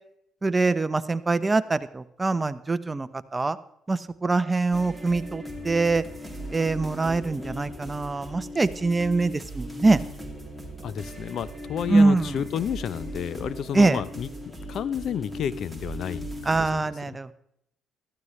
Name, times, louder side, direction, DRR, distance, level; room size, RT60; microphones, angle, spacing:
voice 1, 0.4-3.6 3.9-6.0 6.5-10.0 11.9-12.4 13.7-14.0 16.5-17.3, right 3 dB, 20° right, 14 dB, 0.7 m, -23 dB
sound 1, 4.7-16.7, equal, ahead, 2.5 m, -38 dB
voice 2, 10.8-14.3 14.7-17.2, left 8 dB, 60° left, 18 dB, 0.6 m, -31 dB
15.0 x 13.5 x 3.2 m, 0.75 s
supercardioid pair, 80°, 0 cm